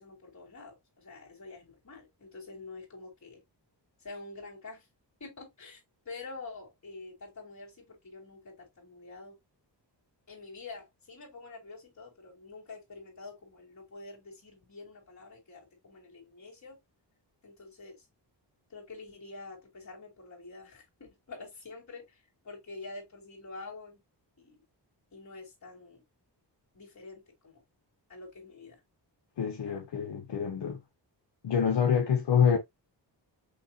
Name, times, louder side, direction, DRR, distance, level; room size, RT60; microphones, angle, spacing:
voice 1, 0.0-3.4 4.0-4.8 5.2-5.8 6.0-9.4 10.3-16.8 17.4-18.0 18.7-24.0 24.4-24.6 25.1-26.0 26.7-27.6 28.1-28.8 29.7-29.8 31.6-31.9, left 3 dB, 40° left, 3.1 m, -47 dB
voice 2, 29.4-30.8 31.4-32.6, left 7 dB, 70° left, 1.0 m, -26 dB
6.5 x 2.9 x 2.8 m
wide cardioid pair, 180°, 43 cm